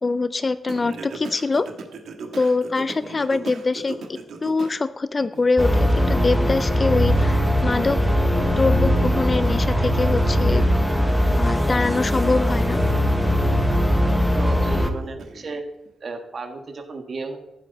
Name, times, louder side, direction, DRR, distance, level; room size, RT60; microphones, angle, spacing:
voice 1, 0.0-1.7 2.3-7.3 7.6-8.0 8.4-10.6 11.4-12.8, left 3 dB, 25° left, 13 dB, 0.3 m, -23 dB
Singing, 0.7-4.8 5.2-15.6, right 4 dB, 70° right, 1.6 m, -40 dB
sound 1, 5.6-14.9, equal, ahead, 1.0 m, -20 dB
voice 2, 14.4-15.6 16.0-17.4, right 3 dB, 40° right, 5 dB, 1.6 m, -33 dB
14.5 x 12.0 x 4.0 m, 0.96 s
wide cardioid pair, 180°, 0 cm